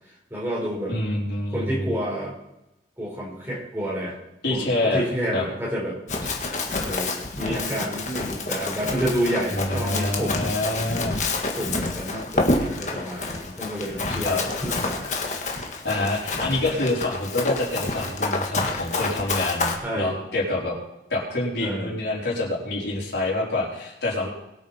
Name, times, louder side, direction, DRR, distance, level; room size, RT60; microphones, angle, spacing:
voice 1, 0.3-0.9 1.5-2.3 3.0-4.2 4.5-6.0 6.8-10.5 11.6-15.1 16.4-16.7 19.8-20.2 21.6-21.9, equal, 15° right, -5 dB, 5.0 m, -29 dB
voice 2, 0.9-1.9 4.4-5.0 5.3-5.5 9.5-11.2 14.2-14.4 15.8-20.8 21.1-24.3, left 2 dB, 75° left, -5 dB, 4.8 m, -26 dB
Run, 6.1-19.7, left 3 dB, 40° left, 1.8 m, -28 dB
21.5 x 8.6 x 4.5 m, 0.90 s
head